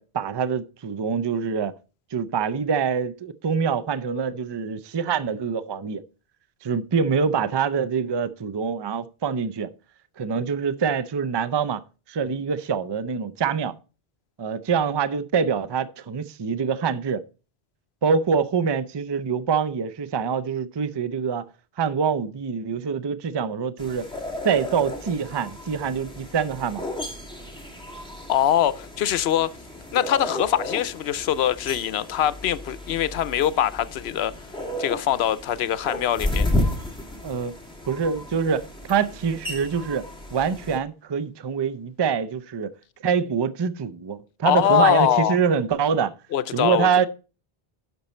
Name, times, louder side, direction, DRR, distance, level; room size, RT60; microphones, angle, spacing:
voice 1, 0.0-1.7 2.1-6.0 6.6-9.7 10.2-11.8 12.1-13.8 14.4-17.2 18.0-21.5 21.8-24.1 24.4-26.8 37.2-37.5 37.9-42.7 43.0-46.1 46.5-47.1, right 6 dB, 35° right, 0.4 m, -25 dB
sound 1, 23.8-40.8, left 1 dB, 5° left, 1.8 m, -33 dB
voice 2, 28.3-29.6 29.9-34.4 34.8-36.5 44.5-45.4 46.3-47.1, left 10 dB, 85° left, 0.8 m, -23 dB
10.5 x 6.1 x 4.2 m
omnidirectional pair, 1.0 m